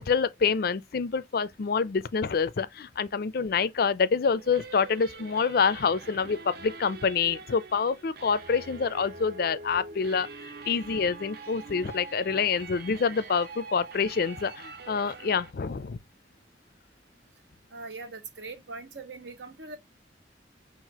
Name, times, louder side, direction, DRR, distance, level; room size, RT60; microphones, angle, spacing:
voice 1, 0.0-10.3 10.7-16.0, left 5 dB, 55° left, 0.4 m, -27 dB
sound 1, 4.4-15.5, right 4 dB, 55° right, 0.7 m, -44 dB
voice 2, 17.7-19.8, right 3 dB, 75° right, 1.0 m, -41 dB
5.7 x 2.5 x 2.9 m
head